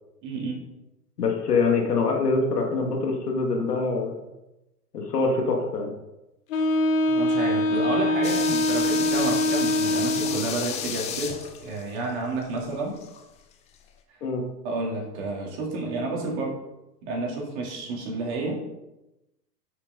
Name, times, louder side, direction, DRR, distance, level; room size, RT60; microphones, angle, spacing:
voice 1, 0.2-0.6 7.1-11.3 11.6-13.0 14.6-16.6 17.0-18.6, right 2 dB, 40° right, -2 dB, 3.5 m, -30 dB
voice 2, 1.2-4.1 4.9-5.9 14.2-14.4, left 4 dB, 65° left, 2 dB, 2.3 m, -24 dB
Wind instrument woodwind instrument, 6.5-10.6, left 1 dB, 50° left, 1.4 m, -23 dB
sound 1, 8.2-13.2 13.5-13.6, left 8 dB, 15° left, 0.6 m, -33 dB
9.4 x 7.4 x 4.1 m, 0.96 s
figure-of-eight pair, 110°, 50 cm